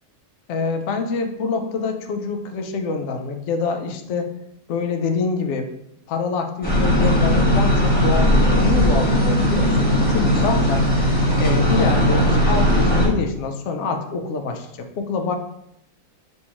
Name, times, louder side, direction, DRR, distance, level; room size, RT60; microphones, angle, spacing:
voice 1, 0.5-4.3 4.7-5.7 6.1-10.9 11.4-15.4, left 4 dB, 65° left, 5 dB, 0.8 m, -25 dB
sound 1, 6.6-13.1, equal, 5° left, 1.2 m, -18 dB
5.5 x 2.6 x 2.9 m, 0.78 s
omnidirectional pair, 1.5 m